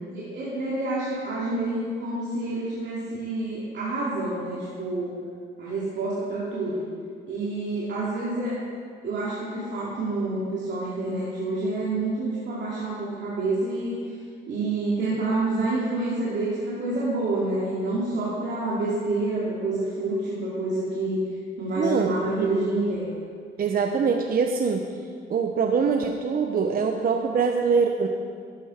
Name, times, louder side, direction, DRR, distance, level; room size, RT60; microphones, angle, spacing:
voice 1, 0.1-5.2 5.6-6.8 7.3-8.6 9.0-14.0 14.5-21.2 21.6-23.1, right 2 dB, 65° right, -7 dB, 2.5 m, -28 dB
voice 2, 21.8-22.9 23.6-24.9 25.3-28.1, right 5 dB, 45° right, 4 dB, 0.8 m, -24 dB
12.0 x 10.5 x 4.3 m, 2.1 s
cardioid pair, 90°, 20 cm